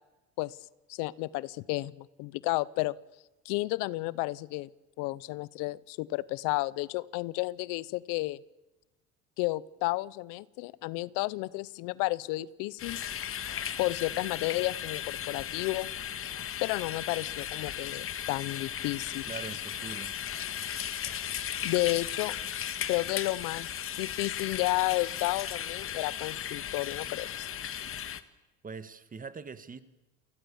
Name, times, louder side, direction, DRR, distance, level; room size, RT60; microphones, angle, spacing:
voice 1, 0.9-3.0 3.4-4.7 5.0-8.4 9.4-13.0 13.8-15.9 16.6-19.3 21.6-22.3 22.9-23.7 24.0-27.5, left 20 dB, 80° left, 21 dB, 0.8 m, -32 dB
sound 1, 12.8-28.2, left 9 dB, 40° left, 1.6 m, -36 dB
voice 2, 19.3-20.1 28.6-29.8, right 5 dB, 25° right, 12 dB, 1.8 m, -42 dB
29.0 x 20.0 x 7.1 m, 1.1 s
supercardioid pair, 95°, 32 cm